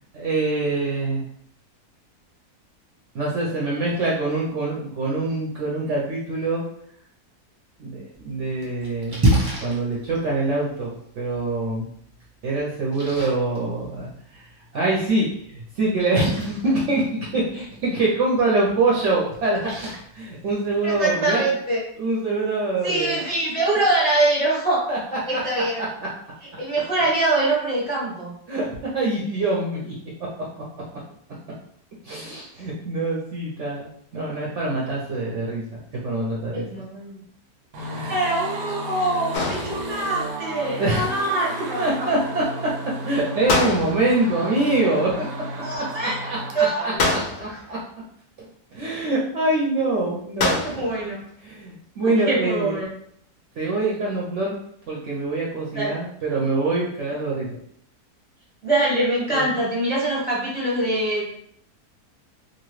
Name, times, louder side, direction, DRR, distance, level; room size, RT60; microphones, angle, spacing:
voice 1, 0.1-1.3 3.1-6.6 7.8-9.2 9.6-11.9 12.4-14.4 14.7-19.6 20.1-21.5 22.0-23.2 24.9-25.0 25.3-25.4 25.8-25.9 28.5-29.9 32.0-36.6 37.8-38.2 40.8-41.1 41.8-42.4 43.1-45.3 45.8-47.8 48.7-50.6 51.4-52.8 53.6-54.6 54.9-57.5 59.3-59.5, right 2 dB, 60° right, -4 dB, 0.8 m, -24 dB
Splash splatter, 8.1-21.1, right 1 dB, 30° right, 0.4 m, -31 dB
voice 2, 20.8-21.8 22.8-24.9 25.3-25.9 26.6-28.3 36.5-37.2 38.1-42.1 45.6-46.1 46.5-47.1 47.5-47.6 50.6-51.2 52.0-52.9 55.7-56.0 58.6-61.2, right 2 dB, 10° left, -6 dB, 0.7 m, -24 dB
sound 1, 37.7-46.6, right 1 dB, 90° right, 1.2 m, -33 dB
sound 2, 39.3-40.2 43.5-44.3 47.0-47.7 50.4-51.1, left 2 dB, 60° left, 0.7 m, -25 dB
2.9 x 2.5 x 3.1 m, 0.67 s
omnidirectional pair, 1.7 m